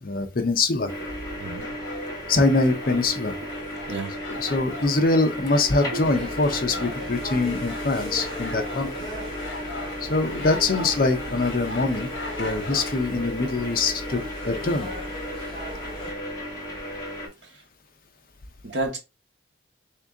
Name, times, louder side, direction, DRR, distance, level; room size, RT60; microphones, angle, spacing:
voice 1, 0.0-0.9 2.3-3.4 4.3-9.1 10.0-12.1 12.4-14.9, left 3 dB, 45° left, 0.6 m, -24 dB
sound 1, 0.9-17.3, equal, 20° left, 1.2 m, -35 dB
voice 2, 1.4-1.7 3.9-4.1 5.9-6.0 18.6-19.0, right 2 dB, 70° right, 1.0 m, -30 dB
sound 2, 1.6-13.0, left 2 dB, 75° left, 1.2 m, -40 dB
sound 3, 6.0-16.1, left 1 dB, 30° right, 2.0 m, -38 dB
3.6 x 2.8 x 3.5 m
head